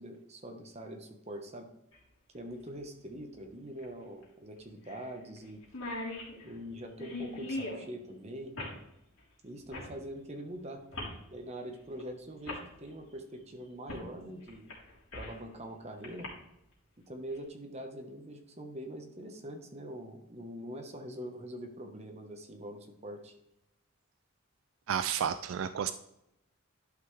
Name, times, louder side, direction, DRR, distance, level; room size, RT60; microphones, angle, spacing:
voice 1, 0.0-1.7 2.3-5.6 6.4-8.5 9.4-10.8 11.3-14.8 15.1-16.3 17.1-23.4, right 1 dB, 30° right, 4 dB, 1.1 m, -44 dB
sound 1, 1.9-2.0 3.8-3.9 4.2-4.3 4.9-5.1 5.4-5.5 5.6-7.8 8.6-8.8 9.7-9.9 10.9-11.2 12.0-12.1 12.4-12.6 13.9-14.1 14.5-15.4 16.0-16.3, left 2 dB, 70° left, 3.4 m, -39 dB
voice 2, 24.9-25.9, right 8 dB, 70° right, 11 dB, 0.3 m, -31 dB
11.5 x 5.7 x 3.3 m, 0.84 s
head